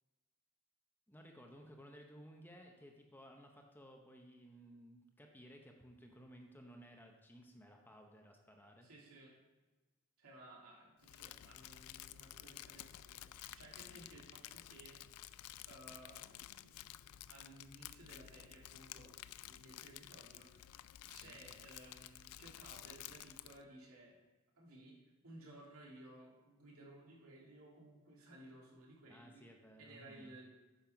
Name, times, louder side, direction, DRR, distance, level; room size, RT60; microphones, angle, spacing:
voice 1, 1.1-8.9 13.9-14.0 21.2-21.4 29.1-30.3, equal, 10° left, 2 dB, 0.8 m, -58 dB
voice 2, 8.8-9.3 10.2-15.0 15.7-16.9 17.3-20.7 21.1-24.2 24.6-29.4 29.8-30.4, right 1 dB, 75° right, -3 dB, 2.6 m, -58 dB
Crumpling crinkling, 11.0-23.6, left 13 dB, 85° left, 0.3 m, -53 dB
9.0 x 5.6 x 5.8 m, 1.2 s
head